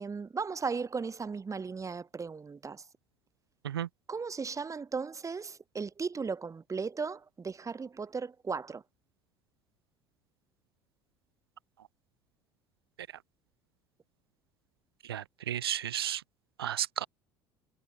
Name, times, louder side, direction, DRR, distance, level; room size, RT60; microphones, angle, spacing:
voice 1, 0.0-2.8 4.1-8.8, right 5 dB, 25° right, 2.3 m, -36 dB
voice 2, 15.1-16.2 16.6-17.1, right 11 dB, 85° right, 1.5 m, -33 dB
hypercardioid pair, 65°, 12 cm